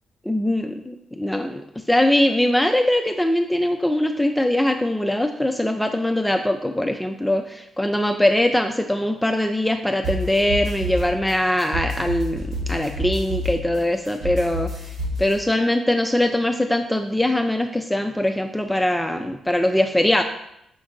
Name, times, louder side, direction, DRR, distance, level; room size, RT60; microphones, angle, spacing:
voice 1, 0.3-14.7 15.2-20.2, left 1 dB, 10° left, 5 dB, 0.3 m, -22 dB
sound 1, 10.0-15.3, equal, 80° right, 1.7 m, -29 dB
5.2 x 2.5 x 3.9 m, 0.80 s
supercardioid pair, 60°, 0 cm